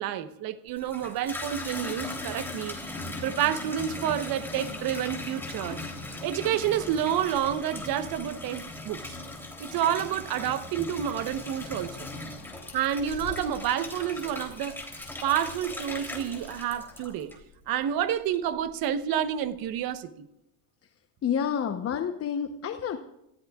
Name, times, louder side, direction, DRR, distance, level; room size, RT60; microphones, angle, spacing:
voice 1, 0.0-2.8 3.2-5.8 6.2-9.2 9.6-12.1 12.7-14.9 15.2-17.4 17.7-20.3, right 10 dB, 50° right, 1.1 m, -29 dB
Water tap faucet / Bathtub (filling or washing), 0.7-17.6 18.1-18.7, left 2 dB, 5° left, 3.2 m, -39 dB
sound 1, 11.2-17.1, left 8 dB, 60° left, 2.4 m, -49 dB
voice 2, 21.2-23.0, left 8 dB, 30° left, 0.9 m, -29 dB
29.5 x 15.0 x 2.4 m
supercardioid pair, 120°, 46 cm